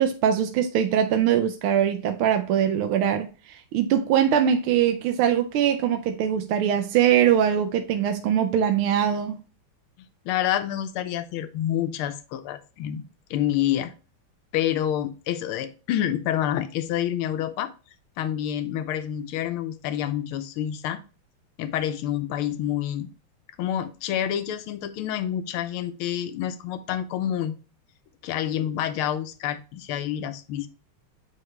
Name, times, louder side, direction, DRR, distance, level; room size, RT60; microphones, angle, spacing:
voice 1, 0.0-9.4, right 9 dB, 75° right, 1.5 m, -22 dB
voice 2, 10.2-13.0 13.3-13.9 14.5-17.7 18.2-21.0 21.6-23.1 23.6-27.6 28.2-30.7, left 11 dB, 80° left, 1.6 m, -28 dB
9.1 x 3.3 x 3.2 m
omnidirectional pair, 2.4 m